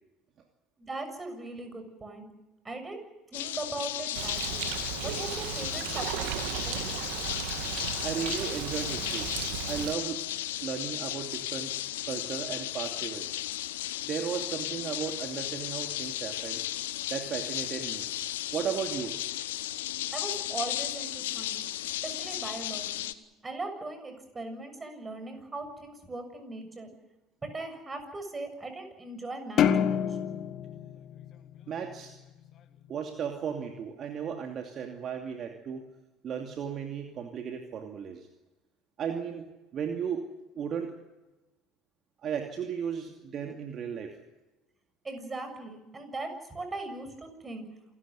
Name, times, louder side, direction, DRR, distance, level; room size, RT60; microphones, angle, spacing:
voice 1, 0.8-2.3 2.6-3.0 3.3-4.7 5.0-6.9 20.1-21.6 22.0-23.1 23.4-26.9 27.4-30.0 45.0-47.7, right 2 dB, 20° right, 7 dB, 7.0 m, -39 dB
sound 1, 3.3-23.1, left 14 dB, 75° left, 1.0 m, -35 dB
Bird, 4.1-9.9, right 12 dB, 65° right, 1.8 m, -35 dB
voice 2, 8.0-9.3 9.7-10.3 10.6-11.7 12.1-13.3 14.1-16.6 17.1-18.0 18.5-19.2 31.7-32.1 32.9-35.8 36.2-38.3 39.0-39.5 39.7-40.2 40.6-40.9 42.2-44.1, right 7 dB, 45° right, 4 dB, 2.6 m, -35 dB
sound 2, 29.6-32.1, left 8 dB, 50° left, 1.9 m, -28 dB
27.5 x 13.5 x 9.6 m, 1.0 s
hypercardioid pair, 70°, 0 cm